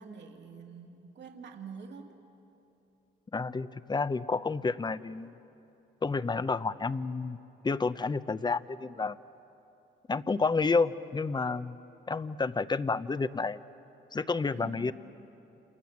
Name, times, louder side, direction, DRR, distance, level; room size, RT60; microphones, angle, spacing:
voice 1, 0.0-2.2 14.6-14.9, right 5 dB, 65° right, 3 dB, 2.6 m, -46 dB
voice 2, 3.3-5.3 6.0-7.4 7.6-9.2 10.1-11.8 12.1-13.6 14.1-14.9, left 4 dB, 20° left, 14 dB, 0.7 m, -30 dB
29.0 x 28.0 x 7.4 m, 2.9 s
cardioid pair, 90°, 20 cm